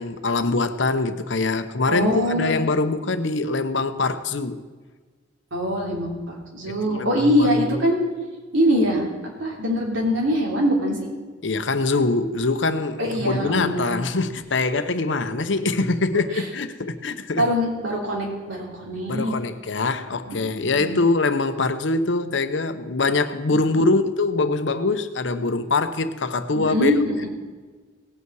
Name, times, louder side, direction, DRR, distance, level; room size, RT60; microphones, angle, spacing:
voice 1, 0.0-4.6 6.7-7.8 11.4-17.4 19.1-26.9, left 3 dB, 70° left, 0.8 m, -23 dB
voice 2, 1.9-2.6 5.5-7.9 8.5-9.1 9.4-11.1 13.0-13.8 15.3-15.4 16.3-16.4 17.4-19.3 20.3-21.0 26.5-27.3, equal, 85° right, 3.3 m, -23 dB
18.0 x 8.4 x 4.7 m
head